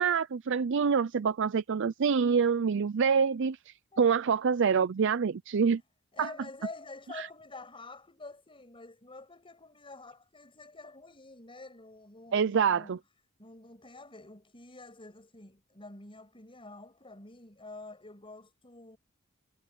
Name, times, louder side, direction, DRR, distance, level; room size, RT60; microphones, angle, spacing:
voice 1, 0.0-5.8 6.2-6.3 7.1-7.3 12.3-13.0, right 6 dB, 60° right, 0.5 m, -26 dB
voice 2, 6.1-13.0 13.4-19.0, left 2 dB, 25° left, 6.6 m, -48 dB
head